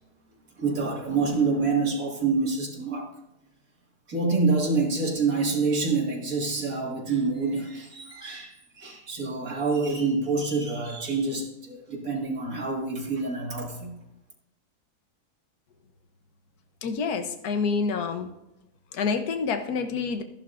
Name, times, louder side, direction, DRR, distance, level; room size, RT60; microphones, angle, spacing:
voice 1, 0.6-3.1 4.1-13.9, right 4 dB, 60° right, 0 dB, 2.4 m, -27 dB
voice 2, 16.8-18.3 18.9-20.2, left 5 dB, 75° left, 7 dB, 1.5 m, -27 dB
14.5 x 11.5 x 2.6 m, 0.89 s
omnidirectional pair, 1.7 m